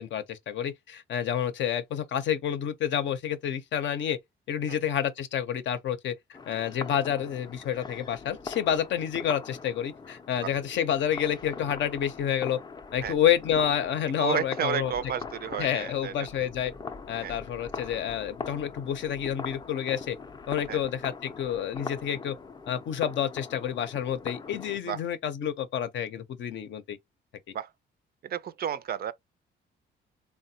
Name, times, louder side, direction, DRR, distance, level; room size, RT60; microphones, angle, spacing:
voice 1, 0.0-4.2 4.5-6.2 6.5-12.6 12.9-14.9 15.6-16.7 17.1-20.2 20.5-22.3 22.7-27.0, left 9 dB, 70° left, 0.6 m, -29 dB
sound 1, 6.3-24.8, left 5 dB, 20° left, 0.4 m, -42 dB
voice 2, 14.2-16.3 17.2-17.3 20.7-20.8 24.9-25.0 27.5-27.7 28.2-29.1, right 9 dB, 50° right, 0.4 m, -32 dB
3.2 x 2.1 x 2.7 m
cardioid pair, 90°, 20 cm